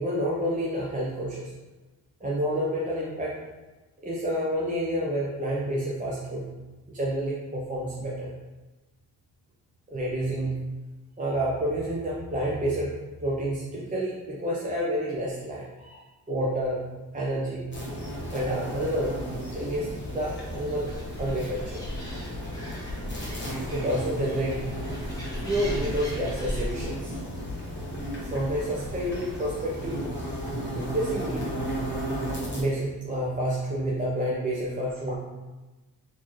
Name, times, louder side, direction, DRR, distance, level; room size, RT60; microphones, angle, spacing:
voice 1, 0.0-1.5 2.2-3.4 4.0-6.5 6.9-8.3 9.9-10.5 11.2-12.9 13.2-16.0 16.3-16.8 17.1-17.7 18.3-19.2 19.5-20.9 21.2-21.8 23.7-24.6 25.4-27.1 28.2-30.0 30.7-31.5 32.5-35.2, equal, 20° right, -5 dB, 0.6 m, -29 dB
sound 1, 17.7-32.6, equal, 30° left, 1.2 m, -34 dB
Animal, 20.9-26.7, equal, 10° left, 1.1 m, -38 dB
4.1 x 2.8 x 3.0 m, 1.1 s
cardioid pair, 95°, 38 cm